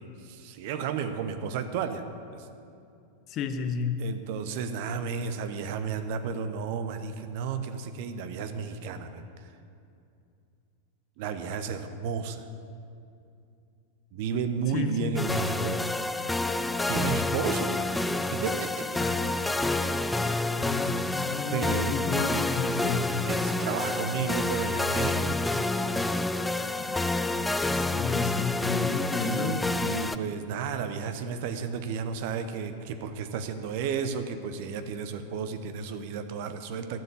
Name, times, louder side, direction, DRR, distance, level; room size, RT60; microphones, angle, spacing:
voice 1, 0.0-2.1 2.3-2.5 4.0-9.5 11.2-12.4 14.1-15.8 16.9-17.8 18.3-19.0 20.2-20.6 21.5-22.1 23.2-25.3 28.8-37.0, right 6 dB, 50° right, 9 dB, 0.8 m, -33 dB
voice 2, 3.3-4.0 14.7-15.2 19.0-19.2 19.6-19.7 20.6-23.1 26.9-27.0 27.7-29.6, left 6 dB, 35° left, 8 dB, 0.9 m, -32 dB
sound 1, 15.2-30.2, left 2 dB, 5° left, 0.4 m, -28 dB
12.0 x 7.6 x 8.3 m, 2.5 s
figure-of-eight pair, 90°, 0 cm